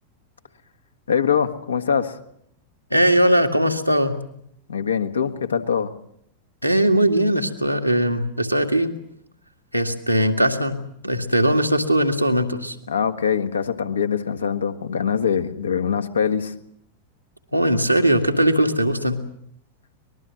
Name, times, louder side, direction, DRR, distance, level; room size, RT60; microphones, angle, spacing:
voice 1, 1.1-2.2 4.7-5.9 12.9-16.5, left 7 dB, 70° left, 9 dB, 1.7 m, -23 dB
voice 2, 2.9-4.2 6.6-8.9 9.7-10.8 11.0-12.8 17.5-19.2, right 1 dB, 90° right, 4 dB, 2.1 m, -19 dB
24.0 x 20.5 x 7.6 m, 0.73 s
figure-of-eight pair, 90°, 0 cm